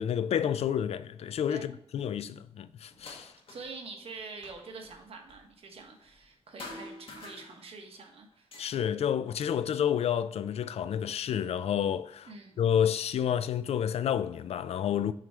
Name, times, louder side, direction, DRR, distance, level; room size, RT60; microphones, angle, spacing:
voice 1, 0.0-3.3 8.6-12.3 12.6-15.1, left 9 dB, 80° left, 0.4 m, -29 dB
sound 1, 2.9-3.8 4.1-6.3 6.6-8.0 8.3-10.2 10.9-11.8 12.7-12.8 13.4-14.4, left 2 dB, 60° left, 1.5 m, -50 dB
voice 2, 3.5-8.5 12.3-12.6, right 4 dB, 65° right, 1.2 m, -46 dB
6.2 x 3.4 x 4.4 m
wide cardioid pair, 120°, 10 cm